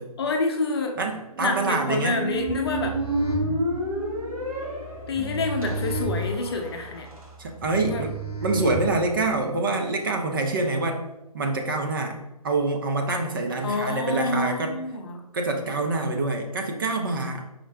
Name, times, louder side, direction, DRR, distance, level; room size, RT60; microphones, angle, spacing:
voice 1, 0.2-1.0 1.4-3.0 5.1-7.1 7.8-8.1 13.6-15.2, left 3 dB, 40° left, 3 dB, 0.6 m, -28 dB
voice 2, 1.0-2.2 3.4-3.6 7.4-8.2 8.4-11.0 11.3-14.7 15.3-17.5, right 3 dB, 35° right, 3 dB, 0.5 m, -26 dB
Squeak, 1.3-7.3, right 1 dB, 65° right, 1.2 m, -31 dB
sound 1, 2.4-9.3, right 2 dB, 15° left, 1.0 m, -34 dB
4.9 x 2.1 x 4.7 m, 0.93 s
figure-of-eight pair, 140°, 20 cm